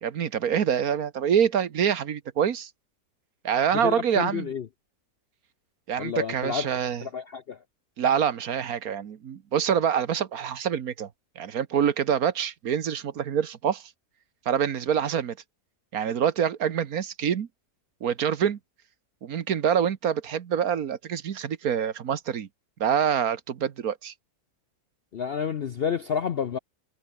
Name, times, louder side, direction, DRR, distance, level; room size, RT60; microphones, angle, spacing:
voice 1, 0.0-2.7 3.4-4.5 5.9-7.0 8.0-11.1 11.4-13.8 14.5-15.4 15.9-17.5 18.0-18.6 19.2-22.5 22.8-24.1, right 8 dB, 65° right, 1.5 m, -26 dB
voice 2, 3.7-4.6 6.0-6.7 7.0-7.6 25.1-26.6, left 7 dB, 55° left, 0.6 m, -29 dB
omnidirectional pair, 1.7 m